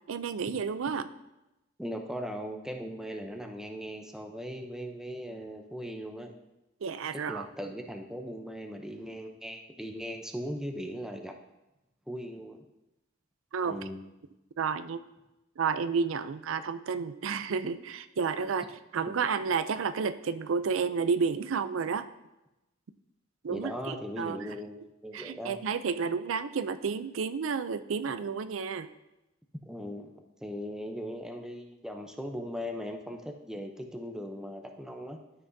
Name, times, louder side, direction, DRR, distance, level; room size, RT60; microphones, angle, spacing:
voice 1, 0.1-1.1 6.8-7.5 13.5-13.8 14.6-15.0 15.6-18.7 18.9-22.1 23.4-24.4 25.1-28.9, right 5 dB, 80° right, 13 dB, 0.4 m, -31 dB
voice 2, 1.8-6.3 7.3-11.4 12.1-12.6 13.6-14.0 23.5-25.6 29.7-35.2, equal, 5° right, 3 dB, 0.6 m, -39 dB
12.5 x 5.9 x 2.7 m, 0.97 s
head